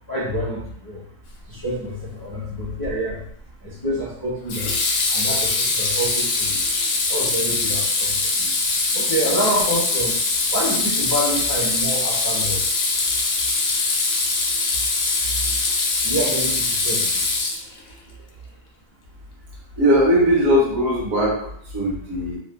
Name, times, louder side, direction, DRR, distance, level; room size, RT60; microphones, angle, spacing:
voice 1, 0.1-1.0 1.5-3.2 3.6-4.7 5.1-6.6 7.1-8.5 8.9-10.2 10.5-12.6 16.0-17.2, right 1 dB, 25° left, -7 dB, 0.4 m, -27 dB
Water tap faucet / Sink (filling or washing), 2.8-3.2 4.5-17.9, left 3 dB, 75° left, 1.0 m, -22 dB
voice 2, 19.8-22.4, equal, 80° right, -3 dB, 1.2 m, -19 dB
3.0 x 2.1 x 2.2 m, 0.66 s
omnidirectional pair, 1.4 m